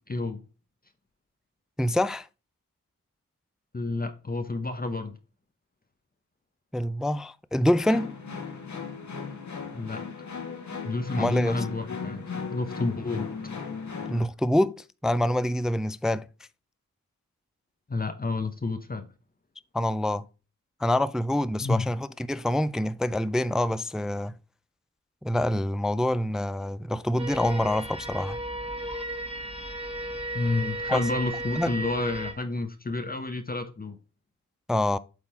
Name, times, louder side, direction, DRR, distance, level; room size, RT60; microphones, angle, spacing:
voice 1, 0.1-0.4 3.7-5.2 9.7-10.0 10.8-12.2 12.5-13.3 17.9-19.1 21.6-21.9 30.3-34.0, left 2 dB, 25° left, 0.8 m, -30 dB
voice 2, 1.8-2.3 6.7-8.1 11.2-11.6 14.1-14.7 15.0-16.3 19.7-20.2 20.8-24.3 25.2-28.4 30.9-31.0 31.6-31.7 34.7-35.0, left 1 dB, ahead, 0.3 m, -26 dB
sound 1, 7.9-14.2, left 5 dB, 55° left, 1.6 m, -36 dB
sound 2, 27.2-32.3, right 1 dB, 20° right, 1.7 m, -35 dB
8.3 x 3.7 x 4.3 m
cardioid pair, 45°, 33 cm